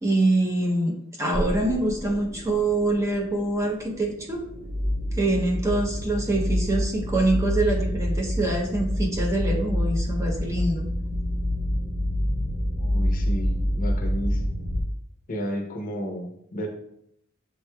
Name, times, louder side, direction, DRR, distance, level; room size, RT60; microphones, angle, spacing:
voice 1, 0.0-4.5 5.2-10.9, right 2 dB, 15° right, 0 dB, 0.6 m, -25 dB
sound 1, 1.3-14.8, left 1 dB, 80° right, 1.1 m, -27 dB
voice 2, 12.8-14.6 15.3-16.7, equal, 40° left, 2 dB, 0.7 m, -32 dB
7.4 x 3.0 x 2.2 m, 0.75 s
head